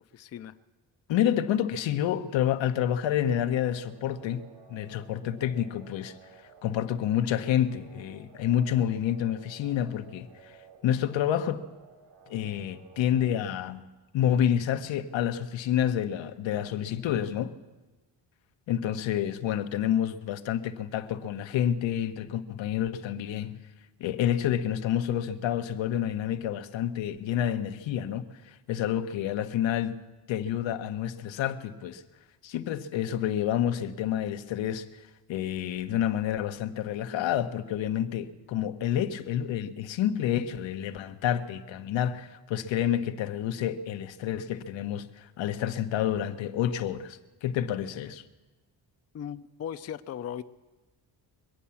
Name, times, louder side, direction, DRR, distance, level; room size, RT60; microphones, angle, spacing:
voice 1, 0.1-0.6 49.1-50.4, left 9 dB, 35° left, 0.4 m, -37 dB
voice 2, 1.1-4.4 4.7-6.1 6.6-10.6 10.8-11.6 12.3-13.8 14.1-17.5 18.7-23.6 24.0-30.0 30.3-32.0 32.4-35.0 35.3-48.2, left 10 dB, 90° left, 0.9 m, -29 dB
sound 1, 3.2-13.3, right 6 dB, 75° right, 3.3 m, -54 dB
22.5 x 8.6 x 7.0 m
cardioid pair, 135°, 45 cm